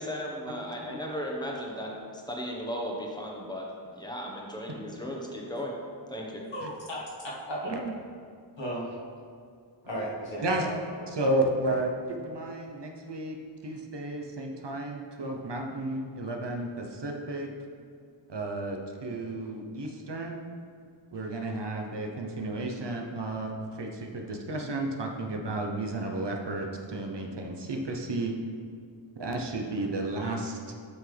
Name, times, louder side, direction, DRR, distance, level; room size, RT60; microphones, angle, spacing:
voice 1, 0.0-3.7 3.9-5.7 6.1-6.4, equal, 10° left, -2 dB, 1.2 m, -36 dB
voice 2, 6.5-8.0 8.6-9.0 9.9-10.8, right 1 dB, 70° left, -5 dB, 1.7 m, -35 dB
voice 3, 11.1-17.5 18.3-20.4 21.1-23.5 23.8-28.3 29.2-30.7, right 2 dB, 60° right, 2 dB, 0.9 m, -32 dB
7.9 x 5.9 x 3.4 m, 2.3 s
wide cardioid pair, 85°, 46 cm